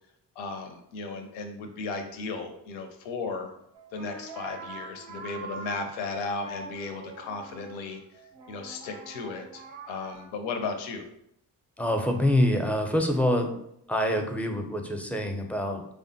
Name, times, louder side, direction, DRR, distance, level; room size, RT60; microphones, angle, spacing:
voice 1, 0.4-3.5 3.9-8.0 8.5-11.1, left 4 dB, 85° left, 5 dB, 0.5 m, -35 dB
sound 1, 3.7-10.3, right 3 dB, 90° right, 0.5 m, -44 dB
voice 2, 11.8-13.5 13.9-15.9, left 1 dB, 5° left, 4 dB, 0.4 m, -25 dB
3.2 x 2.1 x 2.6 m, 0.75 s
supercardioid pair, 45°, 45 cm